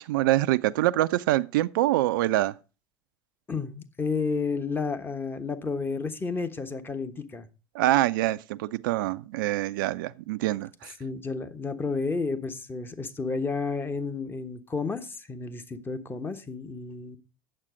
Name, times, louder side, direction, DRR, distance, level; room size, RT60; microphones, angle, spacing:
voice 1, 0.0-2.5 7.7-10.9, right 16 dB, 70° right, 0.4 m, -25 dB
voice 2, 3.5-7.5 11.0-17.2, left 4 dB, 20° left, 1.1 m, -31 dB
8.8 x 7.3 x 4.9 m
hypercardioid pair, 85°, 11 cm